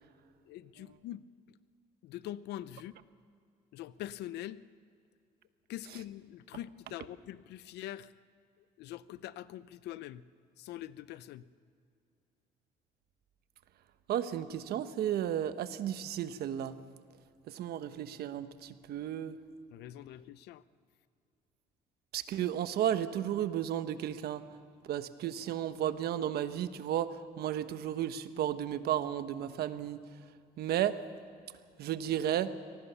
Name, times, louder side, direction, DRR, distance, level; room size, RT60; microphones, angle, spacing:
voice 1, 0.5-1.3 2.0-2.9 3.7-4.6 5.7-8.1 8.6-10.2 10.6-11.4 19.7-20.6, left 13 dB, 80° left, 16 dB, 0.7 m, -44 dB
voice 2, 14.1-16.8 17.5-19.4 22.1-24.4 24.9-30.0 30.6-31.0 31.8-32.5, right 10 dB, 70° right, 11 dB, 1.2 m, -33 dB
24.0 x 18.5 x 7.0 m, 2.4 s
cardioid pair, 110°, 17 cm